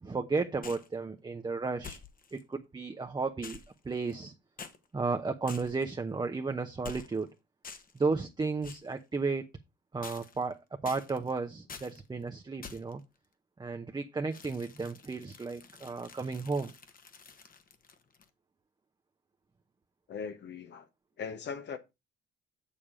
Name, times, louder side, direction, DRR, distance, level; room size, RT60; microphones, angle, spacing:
voice 1, 0.0-2.0 2.3-3.6 3.8-4.3 4.9-7.3 7.9-9.4 9.9-13.0 13.6-16.7, right 4 dB, 20° right, 0.9 m, -33 dB
sound 1, 0.6-0.9 1.8-2.4 3.4-4.3 4.6-4.8 5.5-5.9 6.8-7.3 7.6-8.0 8.6-8.9 10.0-10.5 10.8-11.3 11.7-12.0 12.6-13.0 14.3-18.3, left 5 dB, 45° left, 1.4 m, -48 dB
voice 2, 20.1-20.9 21.2-21.8, left 6 dB, 60° left, 1.2 m, -39 dB
7.2 x 7.1 x 4.9 m
cardioid pair, 90°, 20 cm